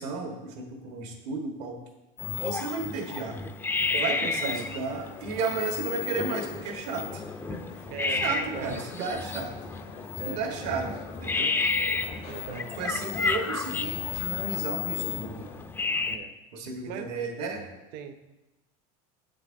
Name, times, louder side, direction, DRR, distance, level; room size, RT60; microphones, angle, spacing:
voice 1, 0.0-1.8 2.4-3.4 4.0-7.2 7.5-7.6 8.0-9.5 10.3-10.9 11.2-11.5 12.8-15.4 16.5-17.6, right 4 dB, 80° right, 3 dB, 1.3 m, -33 dB
sound 1, 2.2-16.2, left 4 dB, 10° left, 0.3 m, -31 dB
sound 2, 3.8-15.7, left 7 dB, 60° left, 0.6 m, -46 dB
voice 2, 3.9-4.7 7.9-9.1 10.1-11.0 12.2-12.8 16.0-16.4 16.8-17.2 17.9-18.1, right 7 dB, 55° right, 10 dB, 0.6 m, -39 dB
7.7 x 6.4 x 2.6 m, 1.0 s
supercardioid pair, 110°, 19 cm